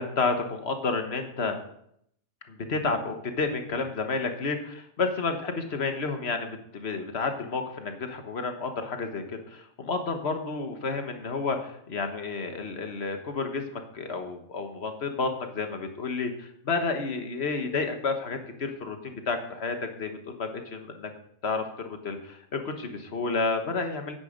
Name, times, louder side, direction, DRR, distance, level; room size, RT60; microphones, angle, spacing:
voice 1, 0.0-1.6 2.5-21.1 21.4-24.1, left 4 dB, 50° left, 6 dB, 1.5 m, -31 dB
10.0 x 9.7 x 5.2 m, 0.71 s
omnidirectional pair, 1.4 m